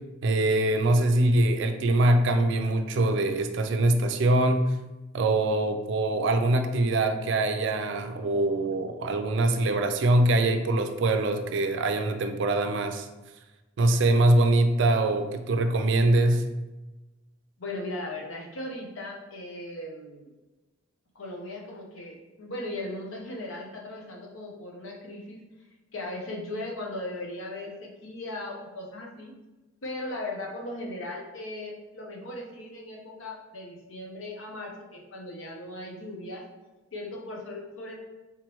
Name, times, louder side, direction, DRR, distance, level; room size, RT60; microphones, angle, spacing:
voice 1, 0.2-4.6 5.1-13.1 13.8-16.4, right 2 dB, 65° right, 7 dB, 0.4 m, -23 dB
voice 2, 17.6-20.3 21.1-25.4 25.9-29.3 29.8-36.4 36.9-38.0, left 1 dB, 80° left, -1 dB, 0.8 m, -38 dB
3.6 x 3.1 x 3.0 m, 1.1 s
head